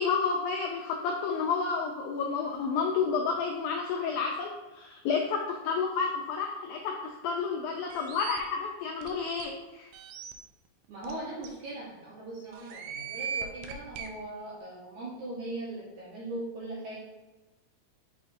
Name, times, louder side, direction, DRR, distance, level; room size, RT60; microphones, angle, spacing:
voice 1, 0.0-9.9, left 5 dB, 85° left, 1 dB, 2.0 m, -30 dB
sound 1, 7.9-8.4 9.0-9.1 9.4-9.5 9.9-10.3 11.0-11.1 11.4-11.5 12.5-14.1, right 7 dB, 85° right, 2.1 m, -38 dB
voice 2, 10.9-17.0, right 2 dB, 70° right, -7 dB, 1.8 m, -39 dB
6.5 x 5.8 x 2.6 m, 1.1 s
omnidirectional pair, 4.9 m